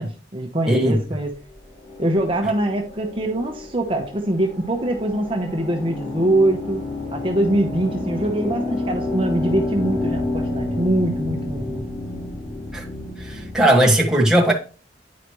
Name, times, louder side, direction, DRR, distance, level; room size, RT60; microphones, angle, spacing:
voice 1, 0.0-1.3 2.0-6.8 7.1-11.9, right 1 dB, 30° right, 0.9 m, -23 dB
voice 2, 0.7-1.0 12.7-12.9 13.2-14.5, right 1 dB, 5° right, 1.2 m, -17 dB
sound 1, 1.7-13.6, left 2 dB, 30° left, 2.8 m, -29 dB
9.5 x 4.9 x 3.1 m
head